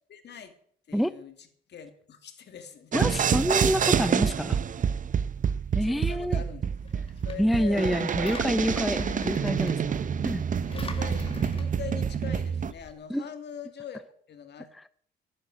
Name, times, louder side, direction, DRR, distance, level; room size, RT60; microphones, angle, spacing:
voice 1, 0.1-0.5 0.9-3.2 4.2-4.3 5.8-6.7 6.9-8.3 10.7-14.9, left 7 dB, 60° left, 8 dB, 2.4 m, -43 dB
voice 2, 2.9-4.6 5.7-6.4 7.4-10.4 13.1-13.3, equal, ahead, 15 dB, 0.5 m, -27 dB
sound 1, 2.9-12.7, right 7 dB, 40° right, 0.7 m, -27 dB
Engine, 6.8-12.9, left 3 dB, 30° left, 2.0 m, -41 dB
11.5 x 8.9 x 9.7 m, 0.62 s
cardioid pair, 90°, 20 cm